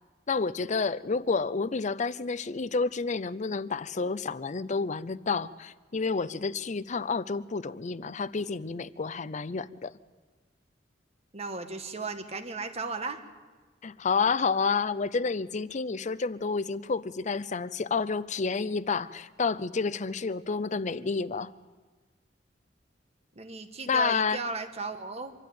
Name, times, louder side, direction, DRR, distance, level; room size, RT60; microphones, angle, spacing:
voice 1, 0.3-9.9 13.8-21.5 23.9-24.4, left 4 dB, 40° left, 17 dB, 0.5 m, -29 dB
voice 2, 11.3-13.2 23.3-25.3, right 4 dB, 35° right, 7 dB, 1.4 m, -35 dB
25.5 x 12.0 x 8.6 m, 1.4 s
head